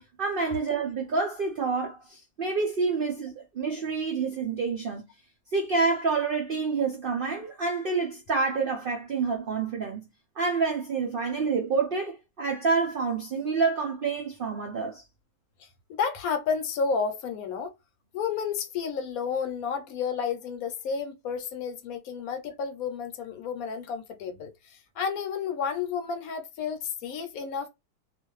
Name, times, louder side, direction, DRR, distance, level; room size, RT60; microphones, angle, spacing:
voice 1, 0.0-5.1 5.5-10.0 10.4-15.1, right 4 dB, 70° right, 0.5 m, -28 dB
voice 2, 16.0-17.7 18.1-27.7, left 6 dB, 70° left, 1.0 m, -31 dB
2.5 x 2.4 x 3.0 m
omnidirectional pair, 1.6 m